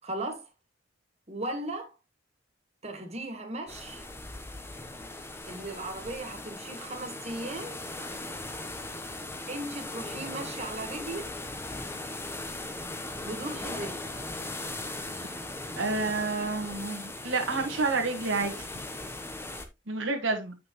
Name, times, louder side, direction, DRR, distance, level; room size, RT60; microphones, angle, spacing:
voice 1, 0.0-0.5 1.3-2.0 2.8-4.1 5.5-7.8 9.5-11.3 13.2-14.2, right 2 dB, 35° right, 1.9 m, -37 dB
sound 1, 3.7-19.7, left 2 dB, 15° left, 0.9 m, -39 dB
voice 2, 15.8-18.7 19.9-20.6, right 3 dB, 75° right, 1.6 m, -29 dB
8.5 x 6.1 x 3.0 m
head